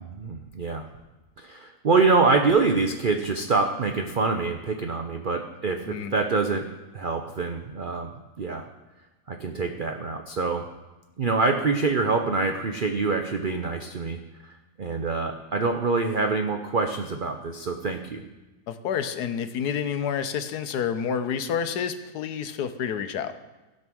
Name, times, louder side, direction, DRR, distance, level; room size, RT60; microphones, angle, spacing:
voice 1, 0.1-0.8 1.4-6.6 6.9-8.1 8.4-8.7 9.3-10.6 11.2-18.2, right 4 dB, 85° right, 5 dB, 0.4 m, -25 dB
voice 2, 18.7-23.3, left 7 dB, 70° left, 10 dB, 1.2 m, -29 dB
16.0 x 5.4 x 6.1 m, 1.1 s
omnidirectional pair, 1.9 m